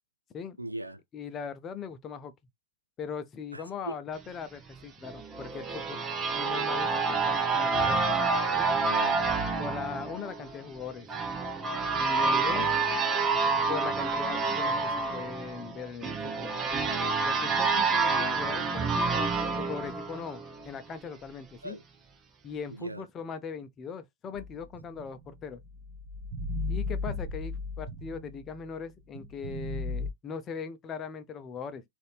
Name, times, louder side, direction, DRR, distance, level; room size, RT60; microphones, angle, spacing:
voice 1, 0.6-1.0 3.5-4.0 8.8-9.2 12.6-12.8 13.1-13.7 21.6-21.8 22.7-23.0, right 1 dB, 85° right, 0.9 m, -40 dB
voice 2, 1.1-2.3 3.0-6.0 6.3-8.0 8.5-8.7 9.6-11.1 11.9-12.7 13.7-16.5 17.2-19.3 19.5-21.8 22.4-25.6 26.7-31.8, left 6 dB, 25° left, 0.7 m, -40 dB
sound 1, 5.0-20.7, right 4 dB, 25° right, 0.8 m, -28 dB
sound 2, 24.4-28.7 29.1-30.1, left 2 dB, 55° right, 1.2 m, -36 dB
3.9 x 2.6 x 3.3 m
figure-of-eight pair, 90°, 0 cm